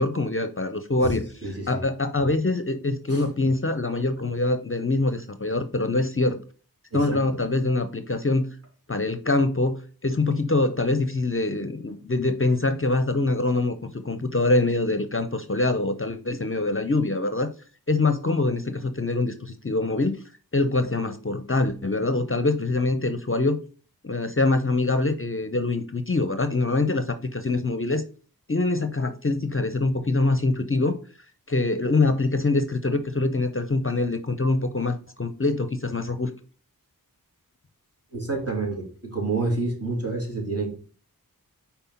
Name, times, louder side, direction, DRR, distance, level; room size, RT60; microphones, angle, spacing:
voice 1, 0.0-1.2 1.7-6.4 6.9-8.5 8.9-17.5 17.9-20.2 20.5-23.6 24.0-28.0 28.5-31.0 31.5-36.3, left 2 dB, 35° left, 0.6 m, -24 dB
voice 2, 1.4-1.8 3.1-3.3 6.9-7.2 38.1-40.7, right 3 dB, 40° right, 3.2 m, -28 dB
5.4 x 4.5 x 5.6 m
wide cardioid pair, 45°, 37 cm